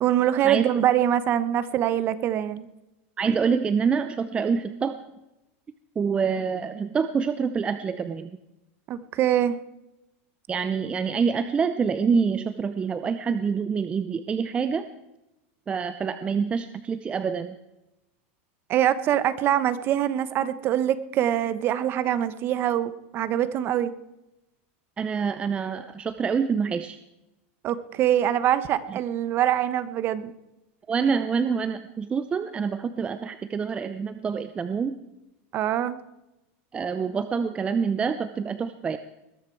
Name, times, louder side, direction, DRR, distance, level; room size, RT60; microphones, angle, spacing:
voice 1, 0.0-2.7 8.9-9.6 18.7-23.9 27.6-30.3 35.5-36.0, right 11 dB, 35° right, 14 dB, 1.0 m, -24 dB
voice 2, 3.2-5.0 6.0-8.3 10.5-14.9 15.7-17.6 25.0-27.0 30.9-35.0 36.7-39.0, right 6 dB, 15° right, 11 dB, 0.6 m, -26 dB
21.0 x 13.0 x 4.6 m, 0.94 s
supercardioid pair, 150°, 7 cm